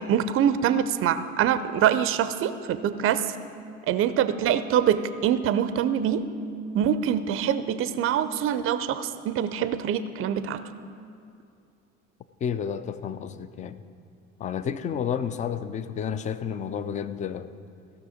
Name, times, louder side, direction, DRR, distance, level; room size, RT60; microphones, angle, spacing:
voice 1, 0.1-3.3 3.9-6.2 6.7-10.6, right 9 dB, 35° right, 13 dB, 0.5 m, -24 dB
voice 2, 12.4-13.8 14.4-17.5, left 7 dB, 20° left, 13 dB, 0.4 m, -31 dB
15.5 x 6.2 x 5.0 m, 2.4 s
figure-of-eight pair, 55°, 39 cm